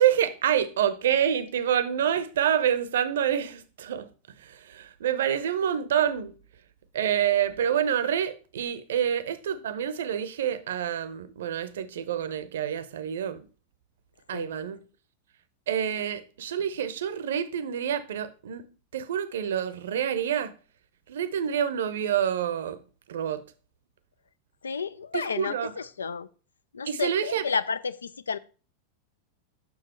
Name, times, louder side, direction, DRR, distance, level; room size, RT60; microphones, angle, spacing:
voice 1, 0.0-4.1 4.4-6.3 6.9-13.5 14.3-14.8 15.7-18.6 18.9-20.5 21.1-22.8 23.1-23.4 25.1-25.7 26.9-27.4, right 9 dB, 60° right, 0.6 m, -27 dB
voice 2, 24.6-26.3 26.7-28.4, left 5 dB, 70° left, 0.4 m, -31 dB
7.0 x 6.1 x 4.3 m
figure-of-eight pair, 90°, 0 cm